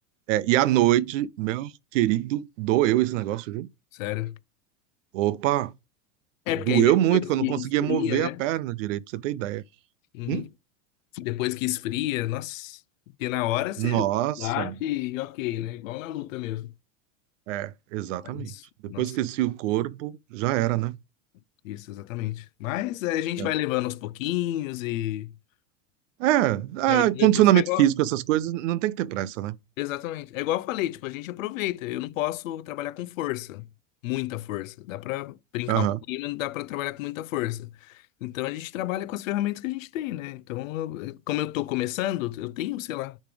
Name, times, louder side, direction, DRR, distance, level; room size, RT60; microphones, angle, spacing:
voice 1, 0.3-3.7 5.1-5.7 6.7-9.6 10.3-10.4 13.8-14.7 17.5-18.5 18.8-21.0 23.4-23.5 26.2-29.6 35.7-36.0, right 14 dB, 70° right, 0.6 m, -24 dB
voice 2, 3.9-4.4 6.5-8.4 10.1-10.5 11.1-12.8 13.2-14.1 14.4-16.7 18.2-19.2 21.6-25.3 26.9-27.9 29.8-33.7 34.0-43.2, left 15 dB, 85° left, 0.6 m, -30 dB
6.9 x 3.2 x 5.1 m
supercardioid pair, 160°, 39 cm